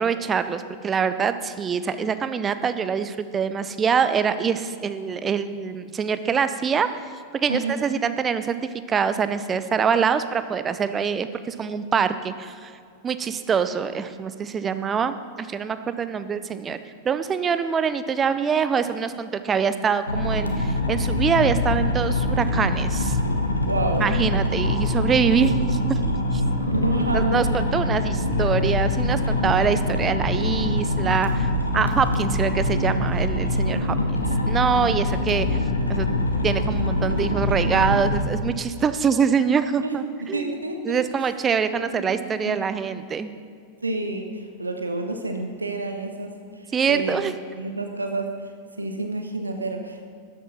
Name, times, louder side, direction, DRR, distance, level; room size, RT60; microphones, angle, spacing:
voice 1, 0.0-7.0 7.3-12.7 13.0-16.8 17.0-23.2 24.0-26.0 26.3-26.4 27.1-34.0 34.5-35.6 35.9-36.1 36.4-40.5 40.9-43.3 46.7-47.3, right 6 dB, 20° right, 11 dB, 0.6 m, -24 dB
voice 2, 7.5-7.8 23.7-24.2 26.7-27.5 39.8-41.3 41.7-42.1 42.4-42.6 43.8-47.2 47.5-48.5 48.8-50.1, right 2 dB, 80° right, 5 dB, 1.1 m, -29 dB
sound 1, 20.1-38.3, left 1 dB, 80° left, 1.2 m, -24 dB
13.0 x 8.1 x 5.7 m, 2.2 s
figure-of-eight pair, 90°, 0 cm